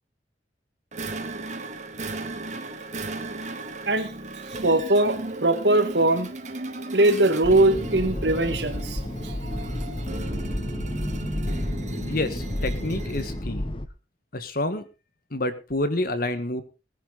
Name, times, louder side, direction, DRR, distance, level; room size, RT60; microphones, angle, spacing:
sound 1, 0.9-13.5, right 2 dB, 40° right, 1.9 m, -35 dB
voice 1, 4.6-6.3 6.9-9.3, right 2 dB, 70° right, 8 dB, 2.0 m, -21 dB
sound 2, 7.4-13.9, left 1 dB, 30° left, 1.2 m, -31 dB
voice 2, 12.1-13.6 14.3-14.8 15.3-16.6, left 1 dB, 55° left, 11 dB, 1.6 m, -28 dB
19.0 x 10.5 x 4.1 m, 0.30 s
head